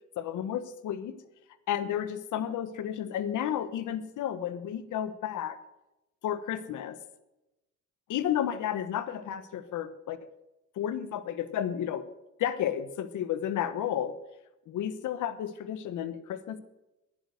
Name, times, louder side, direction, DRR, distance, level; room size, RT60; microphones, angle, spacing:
voice 1, 0.2-1.2 1.7-5.6 6.2-7.0 8.1-10.2 10.8-12.0 12.4-14.2 14.7-16.6, left 10 dB, 80° left, 13 dB, 1.3 m, -32 dB
11.0 x 10.5 x 6.5 m, 0.96 s
cardioid pair, 90°, 30 cm